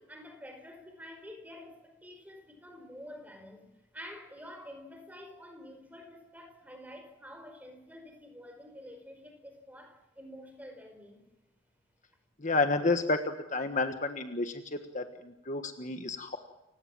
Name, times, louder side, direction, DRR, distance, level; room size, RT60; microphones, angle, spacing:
voice 1, 0.0-3.7 3.9-11.2, equal, 10° right, 5.1 m, -48 dB
voice 2, 12.4-16.4, left 3 dB, 40° left, 1.4 m, -31 dB
30.0 x 17.0 x 7.4 m
head